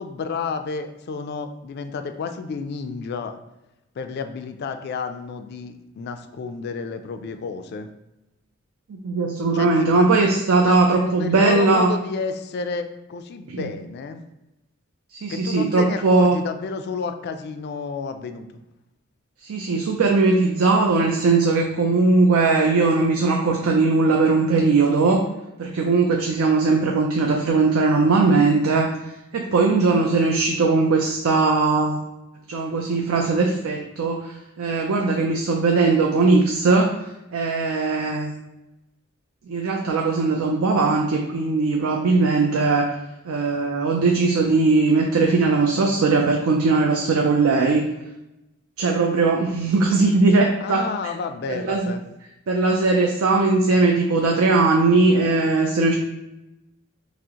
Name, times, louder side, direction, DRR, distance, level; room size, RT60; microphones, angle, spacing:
voice 1, 0.0-3.4 4.0-7.9 9.5-10.1 10.6-14.2 15.3-18.5 50.6-52.0, left 4 dB, 50° left, 7 dB, 0.3 m, -30 dB
voice 2, 8.9-11.9 13.5-13.7 15.2-16.4 19.4-25.2 25.6-32.0 32.5-36.9 37.3-38.3 39.5-42.9 43.3-47.8 48.8-50.8 51.6-51.9 52.5-55.9, right 3 dB, 80° right, 1 dB, 0.4 m, -19 dB
6.0 x 2.0 x 2.8 m, 0.94 s
head